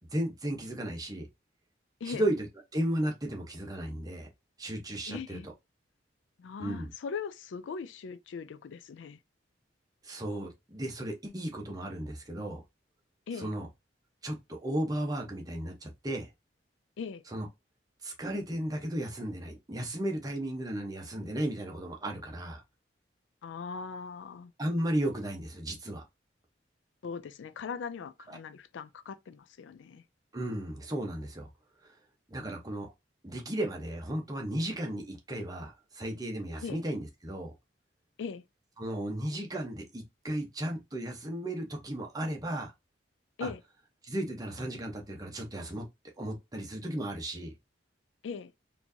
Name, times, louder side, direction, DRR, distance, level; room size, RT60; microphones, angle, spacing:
voice 1, 0.1-1.3 2.0-2.5 2.7-4.3 4.6-5.4 6.6-6.9 10.0-12.6 13.3-13.7 14.2-16.3 17.3-17.5 18.0-22.6 24.6-26.0 28.3-28.4 30.3-31.5 31.8-32.0 32.3-32.9 33.2-37.5 38.8-42.7 43.4-43.5 44.0-45.8 46.2-47.5, right 1 dB, 20° right, 0.9 m, -34 dB
voice 2, 5.1-5.5 6.4-9.2 13.3-13.5 17.0-17.2 23.4-24.5 27.0-30.0 36.6-36.8 38.2-38.4 43.4-43.6 48.2-48.5, left 5 dB, 80° left, 0.4 m, -40 dB
4.4 x 2.7 x 2.7 m
head